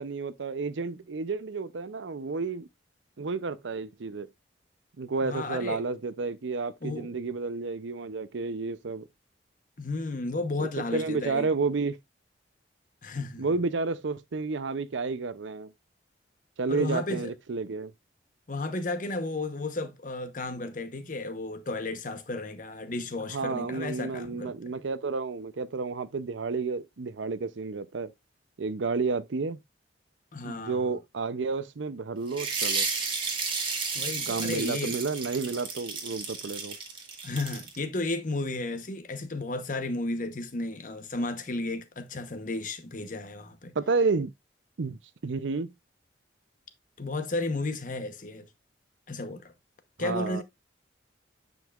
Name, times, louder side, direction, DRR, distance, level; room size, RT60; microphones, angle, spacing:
voice 1, 0.0-2.7 3.2-4.3 5.0-9.1 10.6-12.0 13.4-15.7 16.6-17.9 23.3-28.1 28.6-29.6 30.4-32.9 34.3-36.8 43.8-44.3 44.8-45.7 50.0-50.4, right 4 dB, 80° right, 0.6 m, -31 dB
voice 2, 5.2-5.8 6.8-7.1 9.8-11.5 13.0-13.4 16.7-17.3 18.5-24.7 30.3-30.9 33.9-35.0 37.2-43.7 47.0-48.5 49.1-49.5 50.0-50.4, left 2 dB, 45° left, 0.9 m, -33 dB
sound 1, 32.3-37.8, right 4 dB, 30° right, 1.9 m, -32 dB
9.2 x 5.3 x 2.4 m
head